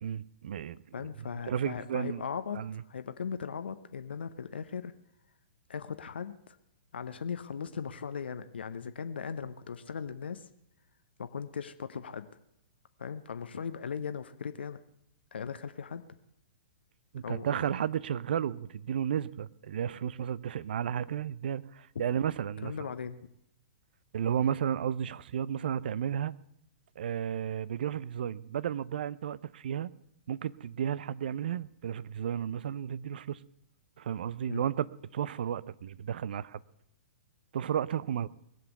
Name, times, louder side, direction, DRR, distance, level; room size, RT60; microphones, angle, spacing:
voice 1, 0.0-0.8 1.5-2.2 2.5-2.8 17.1-22.7 24.1-26.3 27.0-29.9 30.3-33.4 34.0-36.6 37.5-38.3, right 9 dB, 55° right, 20 dB, 0.6 m, -33 dB
voice 2, 0.9-4.9 5.7-6.6 6.9-10.5 11.2-12.3 13.0-14.8 15.3-16.0 17.2-17.6 21.9-22.0 22.6-23.3 34.5-34.6, left 6 dB, 65° left, 10 dB, 0.8 m, -38 dB
20.0 x 7.8 x 8.1 m, 0.78 s
figure-of-eight pair, 115°, 6 cm